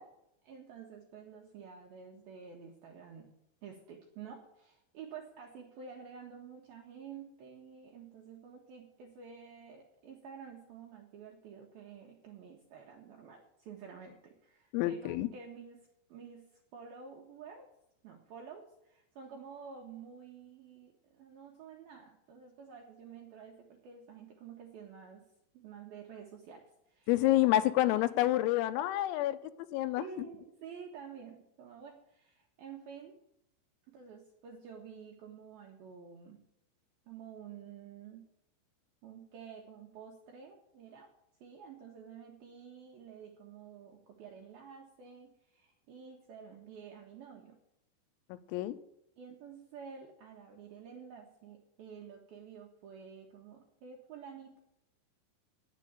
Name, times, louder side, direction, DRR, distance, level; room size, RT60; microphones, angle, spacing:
voice 1, 0.4-3.3 3.6-16.5 16.7-17.7 18.0-25.2 25.5-27.1 27.9-28.0 30.0-33.2 33.9-36.4 37.1-38.2 39.0-41.1 41.4-47.6 49.2-54.6, right 6 dB, 75° right, 0 dB, 2.2 m, -50 dB
voice 2, 14.7-15.3 27.1-30.3 48.3-48.8, left 15 dB, 90° left, 13 dB, 3.4 m, -29 dB
9.9 x 7.6 x 8.2 m, 0.80 s
omnidirectional pair, 5.9 m